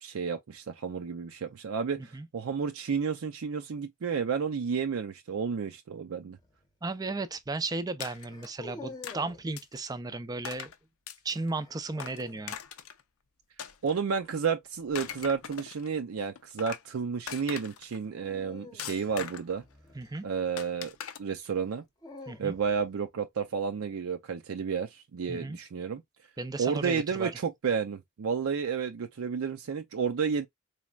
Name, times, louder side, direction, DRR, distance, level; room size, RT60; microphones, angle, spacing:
voice 1, 0.0-6.4 13.8-19.6 20.2-21.8 22.4-26.0 26.6-30.5, right 6 dB, 80° right, 0.5 m, -31 dB
sound 1, 6.3-6.7 8.2-9.5 11.6-12.5 15.0-15.4 18.2-20.5 21.6-22.9, left 2 dB, 20° left, 0.7 m, -48 dB
voice 2, 6.8-10.7 11.2-12.6 20.0-20.2 22.3-22.6 25.3-25.6 26.4-27.3, right 3 dB, 20° right, 0.4 m, -35 dB
sound 2, 8.0-8.5 9.0-9.2 9.6-9.8 10.4-10.8 11.1-11.5 12.0-13.0 13.6-14.3 14.8-15.9 16.4-16.9 17.3-18.0 18.8-19.6 20.6-21.2, left 8 dB, 80° left, 0.5 m, -41 dB
4.1 x 3.1 x 2.3 m
head